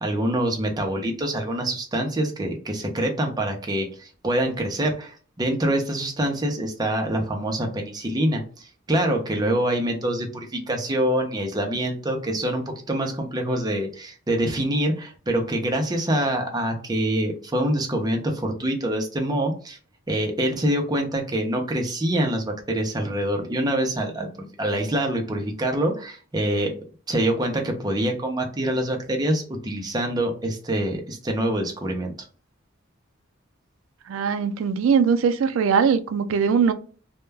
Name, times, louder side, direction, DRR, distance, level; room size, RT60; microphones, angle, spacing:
voice 1, 0.0-19.8 20.1-26.7 27.1-32.1, right 1 dB, 20° right, 0.5 m, -25 dB
voice 2, 34.1-36.7, right 6 dB, 85° right, 0.3 m, -21 dB
2.2 x 2.1 x 3.2 m
head